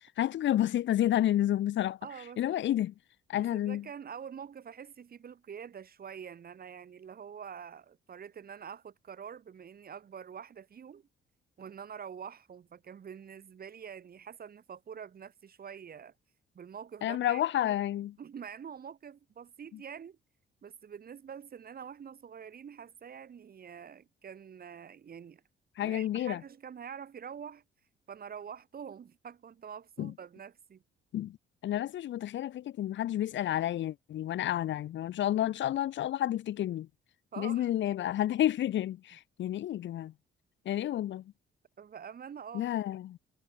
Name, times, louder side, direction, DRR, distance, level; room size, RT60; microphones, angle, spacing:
voice 1, 0.2-2.0 2.4-2.9 3.3-3.9 17.0-18.1 25.8-26.4 30.0-30.1 31.1-31.4 31.6-36.9 37.4-40.1 40.6-41.2 42.5-43.2, left 12 dB, 70° left, 1.0 m, -30 dB
voice 2, 2.0-2.7 3.3-11.1 11.6-16.1 16.5-17.8 18.2-20.2 20.6-25.4 25.8-27.6 28.1-30.8 37.3-37.7 41.8-42.7, right 7 dB, 50° right, 2.9 m, -46 dB
cardioid pair, 90°, 20 cm